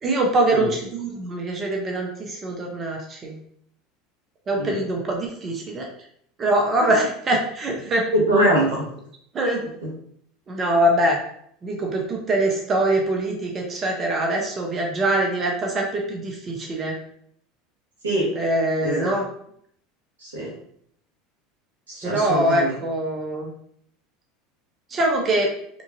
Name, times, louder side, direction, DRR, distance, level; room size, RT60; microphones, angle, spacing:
voice 1, 0.0-3.4 4.5-5.9 6.4-8.0 9.3-9.6 10.5-11.2 11.6-17.0 18.4-19.2 22.0-23.5 24.9-25.5, right 1 dB, 35° right, 0 dB, 0.7 m, -23 dB
voice 2, 8.1-8.8 9.8-9.9 18.0-18.3 18.8-19.2 20.2-20.5 21.9-22.7, right 1 dB, 90° right, -4 dB, 1.2 m, -23 dB
2.9 x 2.4 x 2.6 m, 0.67 s
hypercardioid pair, 85°, 0 cm